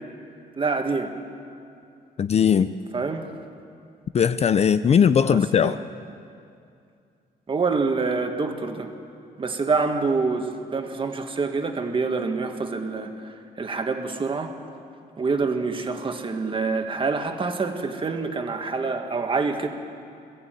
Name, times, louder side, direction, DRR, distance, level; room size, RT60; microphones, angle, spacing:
voice 1, 0.6-1.1 2.9-3.3 5.3-5.8 7.5-8.9 9.4-14.5 15.2-19.7, right 4 dB, 30° right, 5 dB, 1.7 m, -26 dB
voice 2, 2.2-2.7 4.1-5.8, left 7 dB, 40° left, 12 dB, 0.5 m, -19 dB
20.5 x 14.5 x 9.2 m, 2.4 s
cardioid pair, 150°, 17 cm